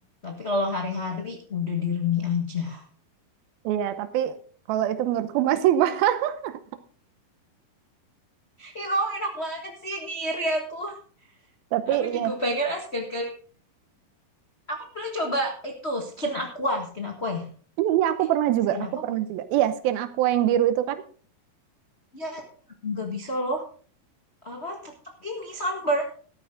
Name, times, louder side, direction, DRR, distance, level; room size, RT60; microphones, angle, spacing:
voice 1, 0.2-2.8 8.6-11.0 11.9-13.3 14.7-17.5 18.7-18.9 22.1-22.4 22.8-23.6 24.4-24.9 25.2-26.0, left 1 dB, 75° left, 1 dB, 0.6 m, -29 dB
voice 2, 3.6-4.4 4.7-6.6 11.7-12.3 17.8-21.0, right 12 dB, 85° right, 11 dB, 2.7 m, -24 dB
13.5 x 12.0 x 3.7 m, 0.43 s
omnidirectional pair, 4.2 m